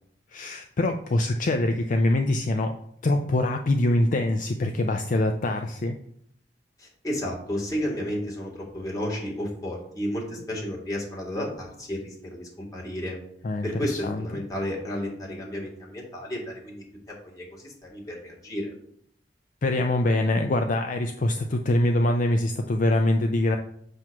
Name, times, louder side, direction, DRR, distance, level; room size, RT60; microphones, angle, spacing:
voice 1, 0.3-2.7 3.0-6.0 13.4-14.4 19.6-23.6, left 1 dB, 50° left, 5 dB, 0.4 m, -24 dB
voice 2, 6.8-13.2 13.6-18.7, equal, 20° left, -4 dB, 2.1 m, -32 dB
7.8 x 2.9 x 5.9 m, 0.67 s
head